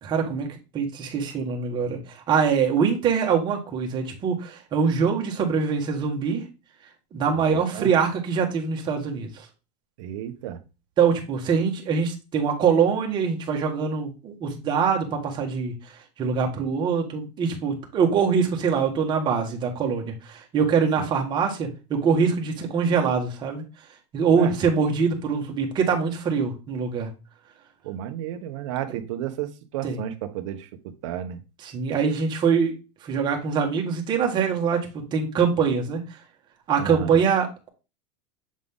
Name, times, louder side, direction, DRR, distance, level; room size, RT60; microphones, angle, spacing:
voice 1, 0.0-0.5 0.7-6.4 7.1-9.4 11.0-15.7 16.2-23.6 24.1-27.1 28.9-29.0 29.8-30.0 31.6-32.7 33.0-36.0 36.7-37.7, right 6 dB, 25° right, 1.6 m, -23 dB
voice 2, 7.3-7.9 10.0-10.6 21.0-21.1 24.3-24.5 27.8-31.4 36.8-37.2, right 11 dB, 65° right, 1.0 m, -33 dB
7.4 x 3.9 x 3.7 m
supercardioid pair, 160°, 17 cm